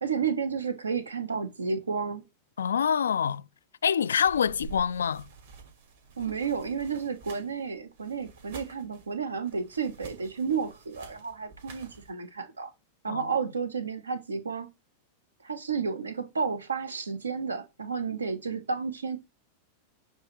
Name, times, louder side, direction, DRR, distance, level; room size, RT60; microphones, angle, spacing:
voice 1, 0.0-2.2 6.2-12.7 13.0-14.7 15.4-19.2, right 5 dB, 75° right, 1.1 m, -31 dB
voice 2, 2.6-3.5 3.8-5.3 13.1-13.3, left 7 dB, 70° left, 0.3 m, -26 dB
sound 1, 4.2-12.1, right 5 dB, 60° right, 2.2 m, -49 dB
8.3 x 2.9 x 4.6 m
figure-of-eight pair, 90°, 0 cm